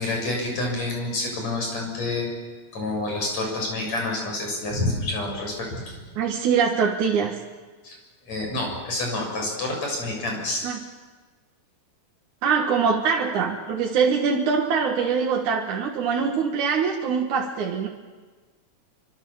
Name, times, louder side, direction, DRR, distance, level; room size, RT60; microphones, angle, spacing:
voice 1, 0.0-2.3 2.7-6.0 7.8-8.0 8.3-10.6, left 2 dB, 60° left, 1 dB, 8.0 m, -28 dB
voice 2, 6.2-7.4 10.6-10.8 12.4-17.9, right 6 dB, 75° right, 0 dB, 3.0 m, -23 dB
27.0 x 25.0 x 7.2 m, 1.4 s
omnidirectional pair, 3.5 m